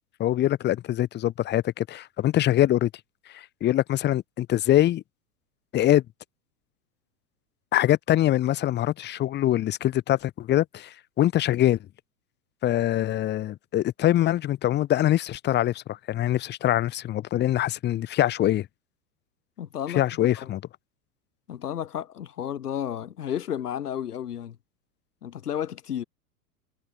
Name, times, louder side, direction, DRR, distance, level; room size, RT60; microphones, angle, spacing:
voice 1, 0.2-2.9 3.3-5.0 5.7-6.0 7.7-11.8 12.6-18.7 19.9-20.6, left 13 dB, 20° left, 1.1 m, -23 dB
voice 2, 19.6-20.0 20.4-20.5 21.5-24.6 25.2-26.0, left 10 dB, 70° left, 2.3 m, -32 dB
figure-of-eight pair, 95°, 48 cm